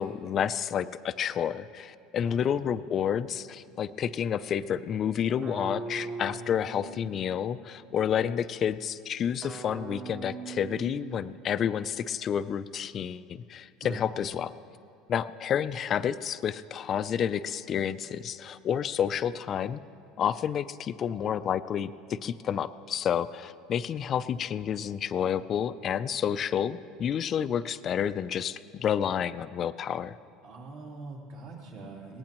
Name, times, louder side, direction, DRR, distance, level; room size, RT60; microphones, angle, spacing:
voice 1, 0.0-14.5 15.1-19.8 20.2-30.1, left 8 dB, 30° left, 14 dB, 0.4 m, -30 dB
voice 2, 2.2-2.6 13.8-14.1 30.4-32.2, right 3 dB, 65° right, -3 dB, 3.2 m, -43 dB
sound 1, 5.4-7.9 9.4-11.7, right 4 dB, 30° right, 1.0 m, -41 dB
22.0 x 18.5 x 3.0 m, 2.7 s
cardioid pair, 155°, 0 cm